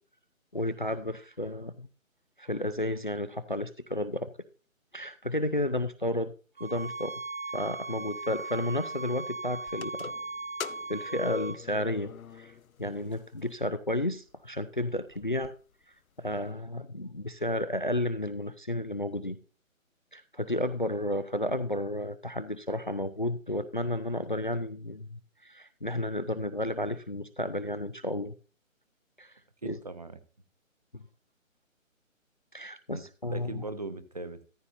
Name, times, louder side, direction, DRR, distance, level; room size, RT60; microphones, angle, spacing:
voice 1, 0.5-1.9 2.4-4.3 4.9-6.3 6.6-7.1 7.5-10.1 10.9-12.5 12.8-15.5 16.2-19.4 20.1-28.3 29.2-29.3 29.6-29.8 30.9-31.0 32.5-33.6, left 1 dB, 40° left, 12 dB, 0.4 m, -32 dB
sound 1, 6.6-11.6, right 3 dB, 75° right, 1.4 m, -38 dB
sound 2, 9.7-12.8 13.1-13.2 14.0-14.1 14.5-14.6 14.9-15.5, left 7 dB, 85° left, 0.7 m, -41 dB
voice 2, 29.6-30.1 32.9-33.0 33.3-34.4, right 2 dB, 30° right, 10 dB, 0.7 m, -39 dB
14.0 x 8.8 x 2.5 m, 0.36 s
figure-of-eight pair, 165°, 41 cm